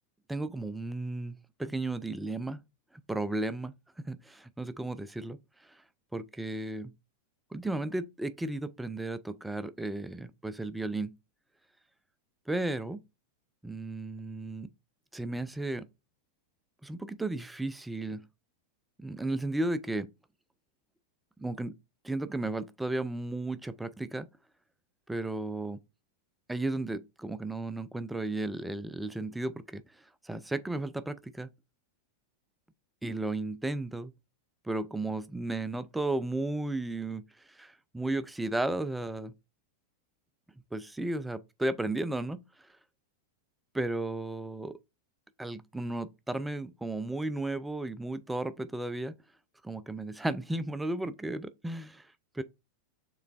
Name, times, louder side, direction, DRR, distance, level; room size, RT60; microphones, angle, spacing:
voice 1, 0.3-2.6 3.1-3.7 4.0-5.4 6.1-6.9 7.5-11.1 12.5-13.0 13.6-14.7 15.1-15.9 16.8-18.2 19.0-20.1 21.4-21.7 22.0-24.3 25.1-25.8 26.5-29.8 30.2-31.5 33.0-34.1 34.6-39.3 40.7-42.4 43.7-44.8 45.4-49.2 49.6-52.1 52.3-52.4, right 2 dB, 5° right, 0.4 m, -34 dB
6.8 x 3.2 x 2.4 m
figure-of-eight pair, 90°, 0 cm